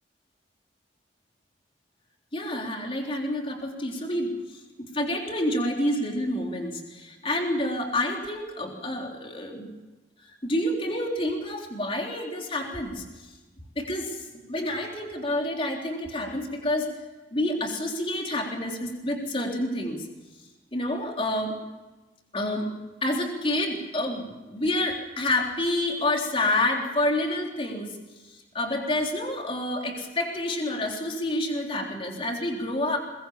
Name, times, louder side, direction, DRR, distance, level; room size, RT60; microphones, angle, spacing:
voice 1, 2.3-4.6 4.9-9.7 10.2-13.0 13.8-16.9 17.3-20.1 20.7-21.6 22.3-22.7 23.0-28.0 28.5-33.0, left 1 dB, 30° left, 1 dB, 3.6 m, -28 dB
23.0 x 21.0 x 7.2 m, 1.1 s
head